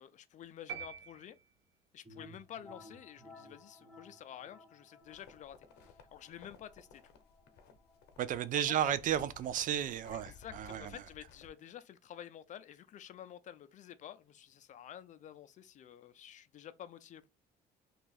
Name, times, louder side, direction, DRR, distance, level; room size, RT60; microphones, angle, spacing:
voice 1, 0.0-1.4 1.9-7.1 8.5-8.9 10.1-17.3, left 10 dB, 45° left, 0.4 m, -50 dB
sound 1, 0.7-1.9, right 7 dB, 80° right, 0.7 m, -46 dB
sound 2, 2.0-11.6, left 2 dB, 5° left, 1.2 m, -59 dB
sound 3, 5.0-11.5, left 5 dB, 75° left, 0.7 m, -58 dB
voice 2, 8.2-10.9, right 10 dB, 50° right, 0.4 m, -33 dB
2.7 x 2.4 x 3.9 m
cardioid pair, 110°, 17 cm